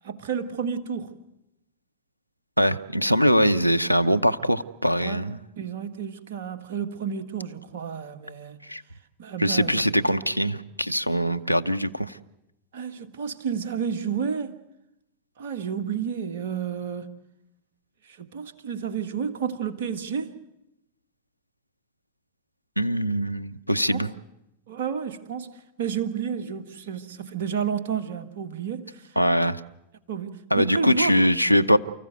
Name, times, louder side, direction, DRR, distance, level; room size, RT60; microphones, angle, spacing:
voice 1, 0.0-1.2 5.0-5.2 5.6-8.7 9.2-9.7 12.7-14.6 15.4-17.1 18.0-20.4 23.9-24.1 24.7-29.2 30.1-31.2, right 7 dB, 55° right, 1.7 m, -31 dB
voice 2, 2.6-5.4 8.7-8.8 9.4-12.1 22.8-24.1 29.2-29.6 30.5-31.8, equal, 90° right, 0.7 m, -22 dB
29.5 x 15.0 x 8.0 m
figure-of-eight pair, 90°, 0 cm